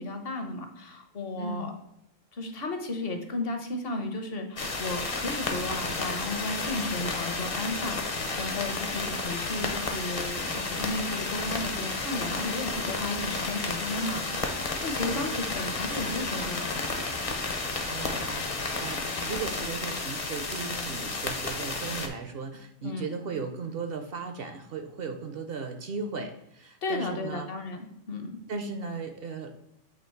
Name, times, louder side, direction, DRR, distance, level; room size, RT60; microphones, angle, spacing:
voice 1, 0.0-1.8 2.3-16.8 22.8-23.1 26.8-28.4, left 2 dB, 50° left, 5 dB, 1.0 m, -34 dB
voice 2, 1.4-1.7 14.9-15.4 17.9-27.5 28.5-29.6, right 4 dB, 60° right, 6 dB, 0.7 m, -37 dB
sound 1, 4.6-22.1, left 3 dB, 35° left, 0.6 m, -32 dB
8.2 x 2.9 x 4.4 m, 0.79 s
omnidirectional pair, 1.3 m